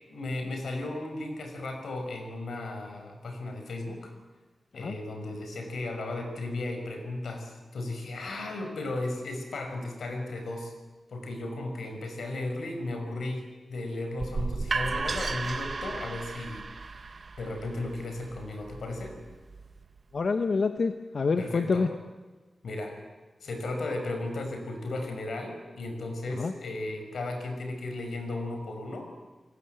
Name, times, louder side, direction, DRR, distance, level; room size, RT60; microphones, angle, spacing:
voice 1, 0.1-4.2 4.7-10.7 11.1-16.9 17.4-19.2 21.4-21.9 22.6-23.0 23.4-29.1, left 2 dB, 90° left, 5 dB, 5.6 m, -35 dB
sound 1, 14.2-20.0, right 4 dB, 45° right, 1.1 m, -35 dB
voice 2, 20.1-21.9 26.4-26.5, left 4 dB, 55° left, 7 dB, 1.1 m, -27 dB
30.0 x 19.0 x 7.9 m, 1.3 s
wide cardioid pair, 135°, 0 cm